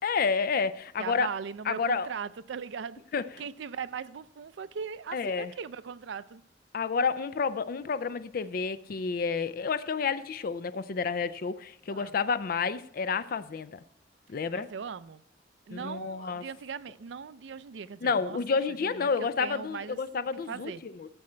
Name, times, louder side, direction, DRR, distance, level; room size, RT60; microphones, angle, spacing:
voice 1, 0.0-1.3 1.7-2.1 3.1-3.2 5.1-5.5 6.7-13.8 14.3-14.7 15.7-16.4 18.0-21.1, left 5 dB, 55° left, 0.4 m, -30 dB
voice 2, 1.0-6.4 11.9-12.1 14.5-15.2 15.7-18.4 18.8-20.0 20.5-20.8, right 6 dB, 80° right, 0.4 m, -39 dB
11.5 x 7.5 x 4.4 m
head